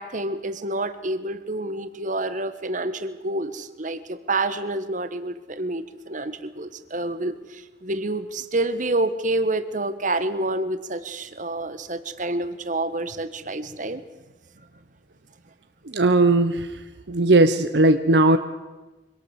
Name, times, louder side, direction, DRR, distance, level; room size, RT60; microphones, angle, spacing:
voice 1, 0.0-14.0, right 2 dB, 45° right, 11 dB, 1.4 m, -28 dB
voice 2, 15.9-16.7 17.1-18.4, right 2 dB, 65° right, 8 dB, 1.0 m, -18 dB
25.0 x 18.0 x 8.1 m, 1.1 s
head